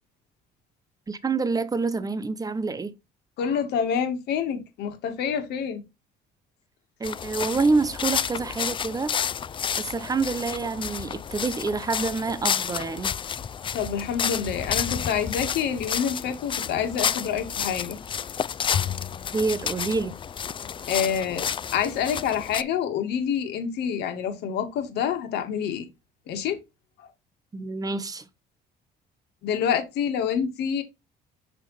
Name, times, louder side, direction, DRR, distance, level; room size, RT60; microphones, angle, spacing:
voice 1, 1.1-3.0 7.0-9.1 9.8-13.1 19.3-20.1 27.5-28.2, right 4 dB, 20° right, 1.1 m, -27 dB
voice 2, 3.4-5.8 13.7-18.0 20.9-25.8 26.3-26.6 27.0-27.1 29.4-30.8, left 8 dB, 80° left, 2.2 m, -27 dB
sound 1, 7.0-22.6, left 7 dB, 30° left, 0.4 m, -31 dB
Bowed string instrument, 18.7-21.3, left 9 dB, 50° left, 1.1 m, -35 dB
6.4 x 6.2 x 3.3 m
cardioid pair, 110°, 17 cm